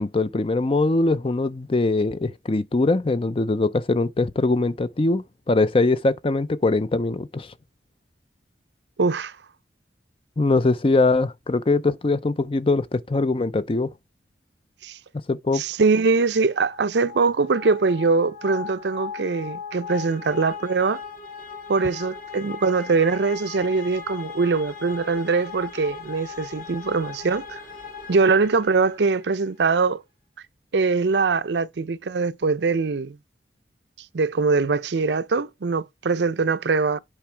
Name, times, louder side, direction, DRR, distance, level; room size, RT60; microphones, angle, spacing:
voice 1, 0.0-7.5 10.4-13.9 15.3-15.6, left 3 dB, 30° left, 0.5 m, -22 dB
voice 2, 9.0-9.3 14.8-15.0 15.5-21.0 21.7-27.6 28.1-30.0 30.7-33.2 34.1-37.0, right 4 dB, 75° right, 0.5 m, -22 dB
sound 1, 16.5-29.3, left 6 dB, 50° left, 1.8 m, -38 dB
8.8 x 4.7 x 3.3 m
head